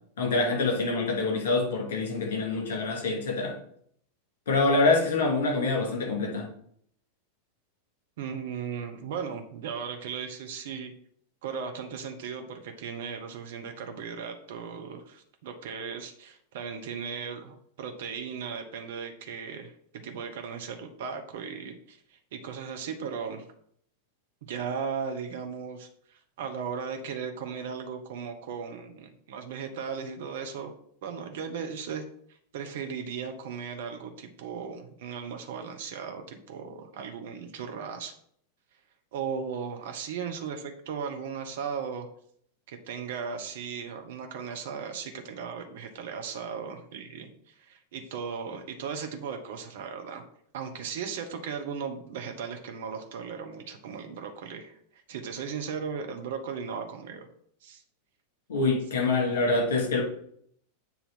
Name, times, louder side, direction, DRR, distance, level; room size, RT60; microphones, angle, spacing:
voice 1, 0.2-3.5 4.5-6.4 58.5-60.0, left 3 dB, 60° left, -2 dB, 3.1 m, -25 dB
voice 2, 8.2-10.9 11.4-23.4 24.4-30.7 31.0-32.0 32.5-38.1 39.1-42.1 42.7-50.2 50.5-57.3 57.6-57.8, right 6 dB, 55° right, 4 dB, 0.8 m, -37 dB
7.6 x 2.8 x 5.6 m, 0.66 s
figure-of-eight pair, 90°, 0 cm